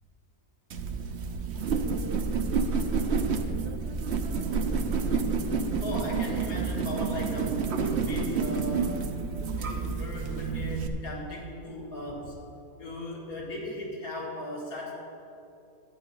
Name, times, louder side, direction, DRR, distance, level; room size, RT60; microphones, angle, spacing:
sound 1, 0.7-10.9, right 5 dB, 55° right, 0.9 m, -29 dB
voice 1, 5.8-9.1 9.6-12.3 12.7-14.9, left 1 dB, 80° left, -4 dB, 2.8 m, -37 dB
11.5 x 8.9 x 5.4 m, 2.7 s
omnidirectional pair, 1.5 m